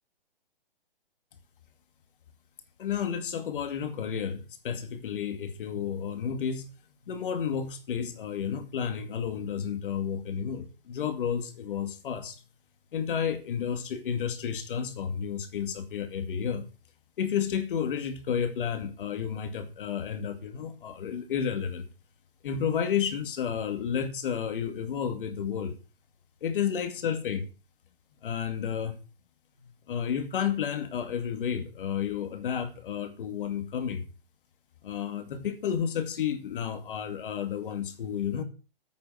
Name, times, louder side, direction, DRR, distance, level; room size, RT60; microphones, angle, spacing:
voice 1, 2.8-6.7 7.1-12.4 12.9-16.7 17.2-21.9 22.4-25.7 26.4-27.5 28.2-29.0 29.9-34.1 34.8-38.4, left 8 dB, 60° left, 2.3 m, -31 dB
8.6 x 7.0 x 7.9 m
hypercardioid pair, 145°, 29 cm